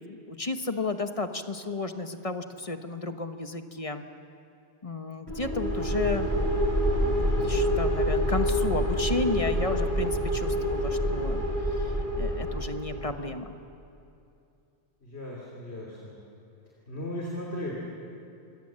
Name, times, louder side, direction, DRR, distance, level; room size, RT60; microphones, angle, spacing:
voice 1, 0.0-4.0 4.8-6.3 7.0-11.4 11.7-13.6, left 3 dB, 30° left, 7 dB, 1.2 m, -33 dB
sound 1, 5.3-13.0, equal, 45° right, 5.5 m, -27 dB
voice 2, 12.9-13.3 15.0-16.2 16.9-17.7, left 1 dB, 70° left, -2 dB, 3.6 m, -37 dB
27.5 x 24.0 x 7.6 m, 2.7 s
omnidirectional pair, 1.2 m